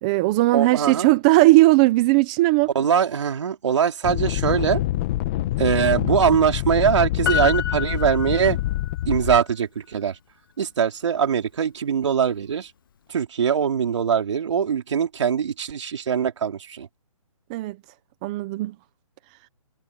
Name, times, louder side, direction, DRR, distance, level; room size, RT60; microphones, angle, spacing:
voice 1, 0.0-2.7 17.5-17.8 18.2-18.8, right 20 dB, 15° right, 0.6 m, -18 dB
voice 2, 0.5-1.1 2.8-4.8 5.6-8.6 9.1-10.2 10.6-12.7 13.1-16.9, right 7 dB, 55° right, 3.5 m, -22 dB
sound 1, 4.0-9.4, left 15 dB, 20° left, 1.0 m, -26 dB
Piano, 7.3-9.0 9.4-9.5, left 8 dB, 35° left, 0.8 m, -28 dB
hypercardioid pair, 165°, 18 cm